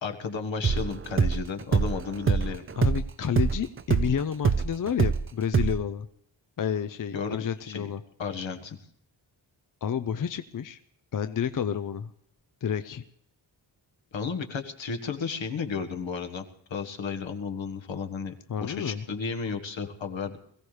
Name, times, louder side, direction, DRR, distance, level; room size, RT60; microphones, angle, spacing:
voice 1, 0.0-2.6 7.1-7.9 8.2-8.8 14.1-18.3 18.6-20.4, left 5 dB, 75° left, 5 dB, 1.6 m, -33 dB
sound 1, 0.6-5.2 5.5-5.8, right 5 dB, 30° right, 0.5 m, -24 dB
voice 2, 2.8-6.1 6.6-8.0 9.8-10.8 11.1-12.1 12.6-13.0 18.5-19.0, left 8 dB, 45° left, 10 dB, 0.6 m, -30 dB
22.0 x 16.0 x 3.3 m, 0.70 s
wide cardioid pair, 160°, 46 cm